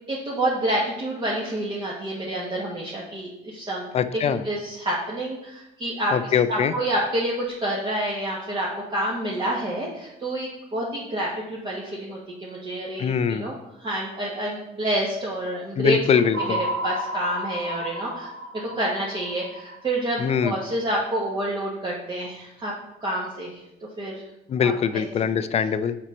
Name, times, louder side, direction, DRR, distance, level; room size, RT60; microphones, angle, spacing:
voice 1, 0.1-3.8 4.1-7.3 7.6-13.5 13.8-16.6 16.8-22.7 23.0-23.5 24.0-24.2 24.6-24.7, right 1 dB, 30° right, -5 dB, 1.3 m, -28 dB
voice 2, 3.9-4.4 6.1-6.7 13.0-13.5 15.8-16.6 20.2-20.6 24.5-26.0, left 7 dB, 40° left, 13 dB, 0.4 m, -22 dB
sound 1, 16.3-20.6, right 1 dB, 75° right, 1.3 m, -32 dB
5.8 x 4.4 x 5.2 m, 0.87 s
cardioid pair, 110°, 17 cm